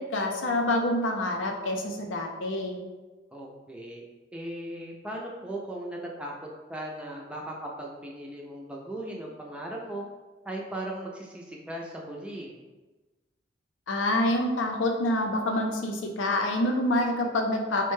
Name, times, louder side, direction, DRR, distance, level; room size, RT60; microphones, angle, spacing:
voice 1, 0.0-2.8 13.9-17.9, left 1 dB, 90° left, 3 dB, 0.5 m, -27 dB
voice 2, 3.3-4.0 4.3-10.0 10.4-12.6, right 1 dB, 5° right, -2 dB, 0.4 m, -38 dB
4.2 x 2.2 x 3.1 m, 1.2 s
head